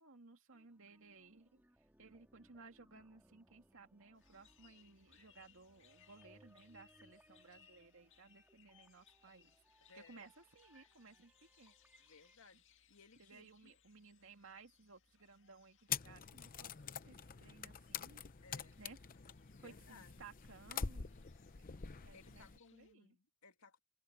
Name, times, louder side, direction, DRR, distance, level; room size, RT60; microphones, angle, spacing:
voice 1, 0.0-1.6 2.0-9.6 9.9-11.7 13.2-18.2 18.8-19.0 19.6-21.1 22.0-23.2, right 4 dB, 65° right, 2.5 m, -60 dB
sound 1, 0.5-12.4, right 1 dB, 10° right, 1.8 m, -70 dB
sound 2, 4.1-22.9, left 8 dB, 60° left, 2.0 m, -71 dB
voice 2, 9.8-10.3 12.0-12.6 12.9-13.8 18.4-18.8 19.6-20.3 22.1-23.8, left 4 dB, 80° left, 2.7 m, -62 dB
sound 3, 15.9-22.6, left 7 dB, 40° left, 0.8 m, -46 dB
open air
head